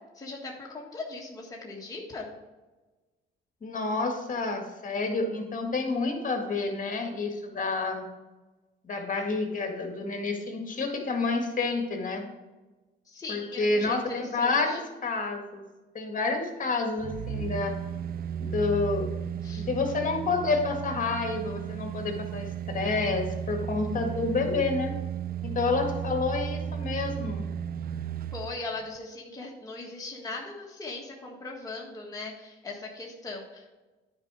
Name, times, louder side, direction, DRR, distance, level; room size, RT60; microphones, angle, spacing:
voice 1, 0.1-2.3 13.0-14.8 19.4-19.7 28.3-33.7, left 3 dB, 20° left, -2 dB, 1.6 m, -39 dB
voice 2, 3.6-8.1 8.8-12.2 13.3-15.6 15.9-17.7 18.4-19.1 19.7-25.0 25.4-27.4, left 3 dB, 40° left, 3 dB, 1.9 m, -29 dB
sound 1, 17.0-28.6 29.0-29.1, right 9 dB, 50° right, 0.5 m, -34 dB
9.5 x 4.9 x 4.8 m, 1.2 s
cardioid pair, 90°, 20 cm